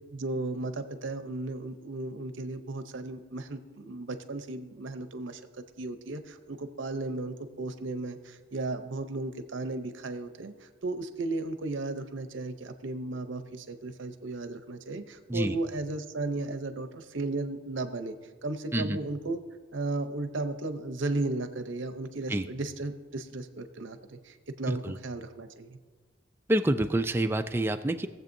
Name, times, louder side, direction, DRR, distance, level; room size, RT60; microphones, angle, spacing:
voice 1, 0.1-5.4 5.8-18.2 18.4-19.4 19.7-25.8, right 2 dB, 70° right, 9 dB, 0.7 m, -35 dB
voice 2, 26.5-28.1, right 1 dB, 10° right, 7 dB, 0.3 m, -27 dB
19.5 x 7.5 x 2.6 m, 1.5 s
head